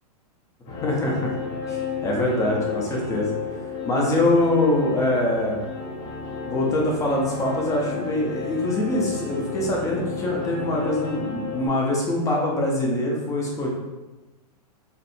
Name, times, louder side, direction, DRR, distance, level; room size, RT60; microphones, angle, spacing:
sound 1, 0.7-11.7, left 5 dB, 55° left, 1.4 m, -32 dB
voice 1, 0.7-1.3 1.7-3.3 3.9-5.6 6.5-13.7, left 1 dB, 15° left, -2 dB, 0.7 m, -24 dB
4.3 x 2.6 x 2.7 m, 1.1 s
hypercardioid pair, 145°, 21 cm